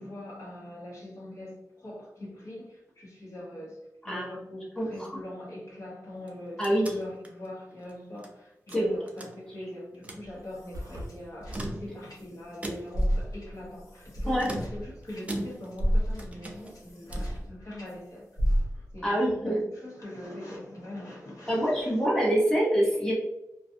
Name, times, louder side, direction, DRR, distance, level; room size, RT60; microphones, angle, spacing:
voice 1, 0.0-3.8 4.0-18.3 18.7-21.9, left 1 dB, 60° left, -5 dB, 1.0 m, -42 dB
voice 2, 4.8-5.1 6.6-6.9 8.7-8.9 14.3-14.5 19.0-19.6 21.5-23.1, equal, 10° left, -6 dB, 0.8 m, -25 dB
sound 1, 6.2-8.3 8.7-9.7 9.9-10.3 11.3-12.2 12.6-13.1 14.4-15.9 16.2-17.4, right 1 dB, 25° right, 0.4 m, -40 dB
sound 2, 10.2-12.6 12.9-17.9 18.4-19.1, equal, 80° left, 0.7 m, -32 dB
sound 3, 10.7-11.1, equal, 85° right, 0.5 m, -38 dB
2.5 x 2.3 x 2.6 m, 0.89 s
wide cardioid pair, 120°, 6 cm